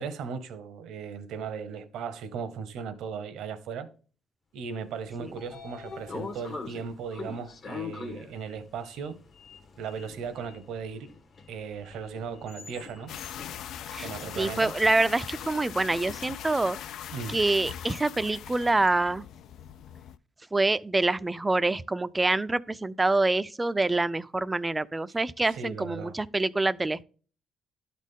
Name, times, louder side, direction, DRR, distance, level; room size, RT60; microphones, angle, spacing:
voice 1, 0.0-3.9 4.5-9.2 9.8-11.1 11.5-13.1 14.0-14.7 17.1-17.4 25.5-26.1, right 6 dB, 80° right, 0.9 m, -37 dB
Sliding door, 4.9-15.1, left 4 dB, 50° left, 1.3 m, -43 dB
sound 1, 13.1-20.2, left 10 dB, 75° left, 0.3 m, -40 dB
voice 2, 14.4-16.8 17.3-19.2 20.5-27.0, right 2 dB, 20° right, 0.4 m, -26 dB
12.0 x 4.1 x 3.7 m
cardioid pair, 75°, 0 cm